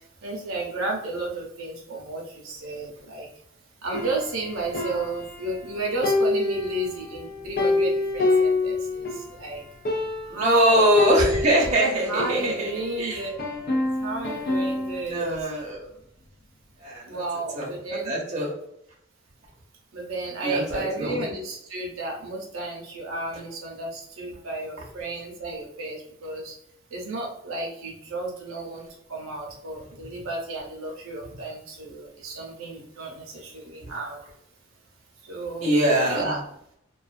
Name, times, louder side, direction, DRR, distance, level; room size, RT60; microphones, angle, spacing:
voice 1, 0.2-3.3 3.8-9.1 9.4-9.6 10.3-11.0 12.1-13.4 13.7-15.4 17.1-18.1 19.9-26.5 26.9-28.8 29.1-34.2 35.3-35.7 36.1-36.4, right 2 dB, 80° right, -1 dB, 0.6 m, -32 dB
sound 1, 3.9-5.7 6.0-9.3 9.6-9.7 9.8-10.5 11.0-13.0 13.4-15.1, left 2 dB, 45° left, 0.4 m, -27 dB
voice 2, 10.3-12.7 13.0-13.2 15.0-15.8 16.8-17.2 17.5-18.5 20.4-21.2 35.6-36.3, right 1 dB, 35° right, -4 dB, 0.7 m, -23 dB
2.4 x 2.2 x 2.4 m, 0.73 s
head